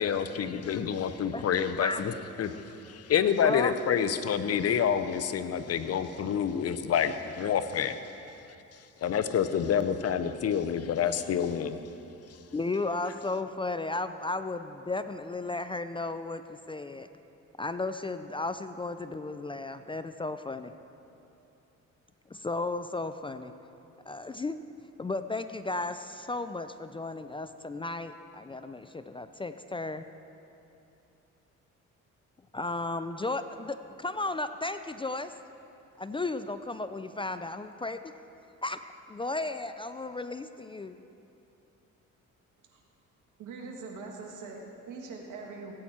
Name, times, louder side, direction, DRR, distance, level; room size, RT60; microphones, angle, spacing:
voice 1, 0.0-2.5 2.8-8.0 9.0-11.8, left 8 dB, 55° left, 11 dB, 0.7 m, -28 dB
voice 2, 3.4-3.7 12.5-17.1 17.6-20.7 22.3-23.5 24.1-24.6 25.0-30.0 32.5-35.3 36.0-38.2 38.6-38.8 39.1-41.0, left 2 dB, 20° left, 10 dB, 0.4 m, -34 dB
voice 3, 43.4-45.7, right 4 dB, 90° right, 1 dB, 1.7 m, -42 dB
17.0 x 8.8 x 4.3 m, 2.8 s
cardioid pair, 90°, 30 cm